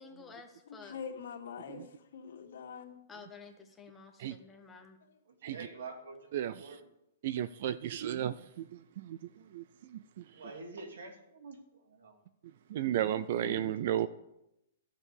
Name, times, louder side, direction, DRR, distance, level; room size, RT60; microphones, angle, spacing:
voice 1, 0.0-1.0 3.1-5.0, left 5 dB, 10° left, 3 dB, 1.2 m, -51 dB
voice 2, 0.7-1.8 2.1-3.0 13.3-13.6, left 6 dB, 70° left, 0 dB, 2.6 m, -44 dB
voice 3, 5.3-6.8 10.3-12.2, right 3 dB, 85° right, 4 dB, 3.0 m, -47 dB
voice 4, 6.3-6.8 7.2-10.5 12.7-14.1, right 11 dB, 45° right, 16 dB, 0.4 m, -34 dB
13.5 x 7.1 x 8.3 m, 0.86 s
hypercardioid pair, 170°, 0 cm